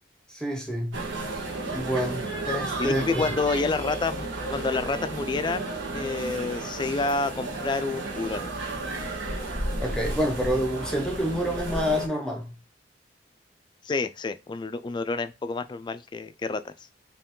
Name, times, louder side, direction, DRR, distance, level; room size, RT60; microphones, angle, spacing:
voice 1, 0.3-1.0 1.7-3.2 9.8-12.6, equal, 5° left, 0.7 m, -28 dB
sound 1, 0.9-12.1, right 2 dB, 85° right, 1.4 m, -33 dB
voice 2, 2.8-8.5 13.8-16.7, left 3 dB, 25° left, 0.3 m, -29 dB
4.5 x 3.0 x 3.7 m
head